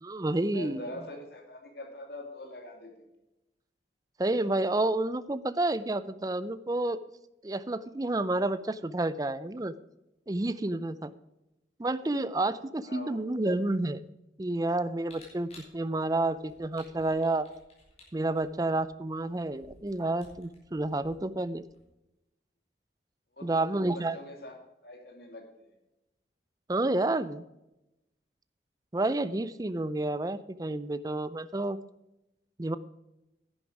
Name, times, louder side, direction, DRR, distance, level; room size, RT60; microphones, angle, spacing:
voice 1, 0.0-0.8 4.2-7.0 7.4-9.7 10.3-11.1 11.8-14.0 14.4-17.5 18.1-21.6 23.4-24.2 26.7-27.4 28.9-31.8 32.6-32.8, right 2 dB, 20° right, 15 dB, 0.5 m, -30 dB
voice 2, 0.5-3.1 12.8-13.2 23.3-24.6 24.8-25.7, left 1 dB, 65° left, 3 dB, 2.6 m, -44 dB
Camera, 15.0-21.8, left 2 dB, 35° left, 4.5 m, -57 dB
10.5 x 10.5 x 4.9 m, 0.92 s
head